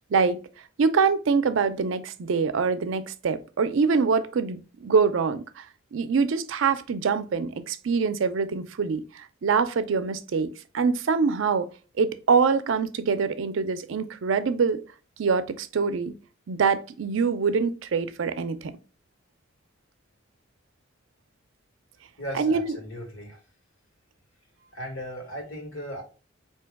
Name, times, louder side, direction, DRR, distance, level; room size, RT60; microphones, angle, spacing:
voice 1, 0.1-0.4 0.8-5.7 5.9-11.7 12.0-14.8 15.2-16.1 16.5-18.7 22.3-22.8, right 5 dB, 70° right, 0.4 m, -24 dB
voice 2, 22.2-23.4 24.7-26.0, equal, 85° left, 1.5 m, -37 dB
3.8 x 2.8 x 3.4 m
head